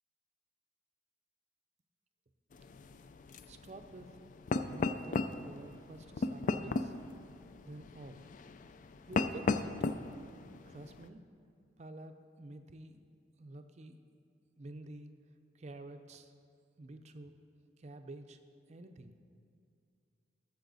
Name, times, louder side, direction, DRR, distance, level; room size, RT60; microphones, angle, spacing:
sound 1, 2.5-11.1, left 3 dB, 45° left, 0.3 m, -37 dB
voice 1, 3.5-4.1 4.5-6.9 7.6-8.3 9.1-10.0 10.7-11.2 11.8-12.1 12.4-13.0 13.4-14.0 14.6-15.1 15.5-16.3 16.8-17.3 17.8-18.4 18.7-19.2, right 2 dB, 35° right, 8 dB, 0.5 m, -49 dB
12.5 x 6.9 x 4.0 m, 2.4 s
head